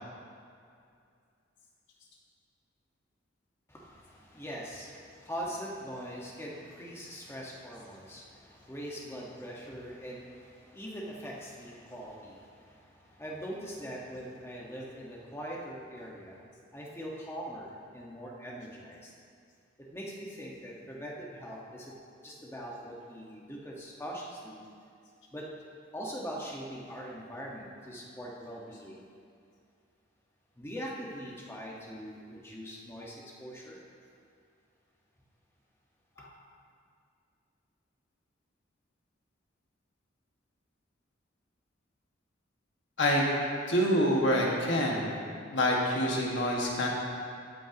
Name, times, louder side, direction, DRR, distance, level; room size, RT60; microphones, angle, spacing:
voice 1, 3.7-16.5 16.7-19.1 19.9-21.9 22.2-24.6 25.3-25.5 25.9-29.1 30.6-33.8, equal, 15° left, -3 dB, 1.3 m, -42 dB
voice 2, 43.0-43.3 43.7-45.1 45.5-46.9, equal, 70° left, -2 dB, 1.7 m, -26 dB
14.0 x 9.0 x 2.9 m, 2.4 s
head